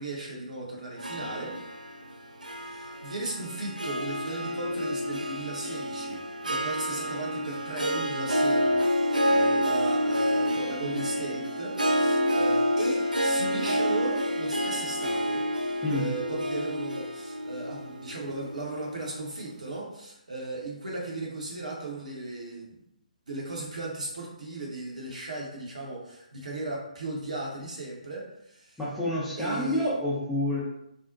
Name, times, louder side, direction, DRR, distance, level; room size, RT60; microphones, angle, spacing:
voice 1, 0.0-1.6 2.5-15.4 15.9-22.8 23.3-28.8 29.4-29.9, right 2 dB, 65° right, -2 dB, 0.8 m, -37 dB
Harp, 1.0-19.4, equal, 85° right, 0.4 m, -28 dB
voice 2, 28.8-30.6, left 1 dB, 5° left, -9 dB, 0.5 m, -28 dB
2.5 x 2.1 x 2.4 m, 0.78 s
figure-of-eight pair, 140°, 4 cm